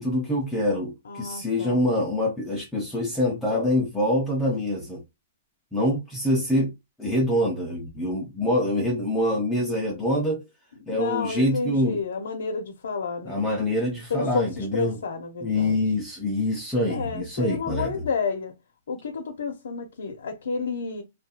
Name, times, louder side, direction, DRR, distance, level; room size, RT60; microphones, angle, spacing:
voice 1, 0.0-5.0 5.7-6.7 7.0-10.4 10.9-12.0 13.3-15.0 15.4-18.0, left 1 dB, 5° left, 0.3 m, -25 dB
voice 2, 1.1-1.9 10.9-13.5 14.1-15.8 16.9-18.5 18.9-21.0, left 5 dB, 85° left, 0.6 m, -30 dB
2.3 x 2.2 x 2.7 m
hypercardioid pair, 180°, 0 cm